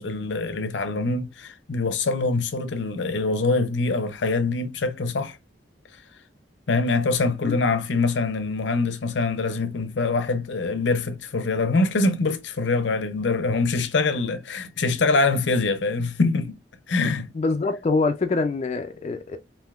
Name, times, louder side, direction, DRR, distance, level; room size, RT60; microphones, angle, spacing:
voice 1, 0.0-5.4 6.7-16.6 16.9-17.3, left 3 dB, 85° left, 0.6 m, -24 dB
voice 2, 17.3-19.4, left 3 dB, 35° left, 0.3 m, -24 dB
3.4 x 2.6 x 2.3 m
head